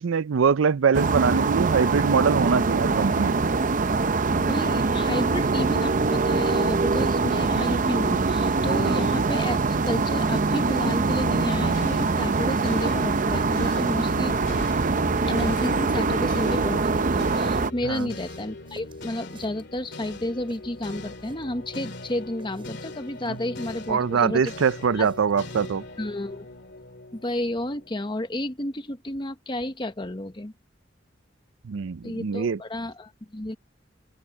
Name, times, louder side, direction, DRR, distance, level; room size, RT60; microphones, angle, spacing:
voice 1, 0.0-3.5 8.8-9.0 17.8-18.1 23.3-23.4 23.9-25.8 31.6-32.6, right 6 dB, 90° right, 0.5 m, -23 dB
sound 1, 0.9-17.7, right 3 dB, 45° right, 0.6 m, -23 dB
voice 2, 4.4-14.3 15.3-24.5 25.0-25.1 26.0-26.5 27.1-30.5 32.0-33.6, left 1 dB, 25° left, 1.1 m, -31 dB
sound 2, 11.7-28.0, left 2 dB, 60° left, 2.5 m, -41 dB
sound 3, 13.3-25.9, right 2 dB, 25° right, 6.4 m, -55 dB
head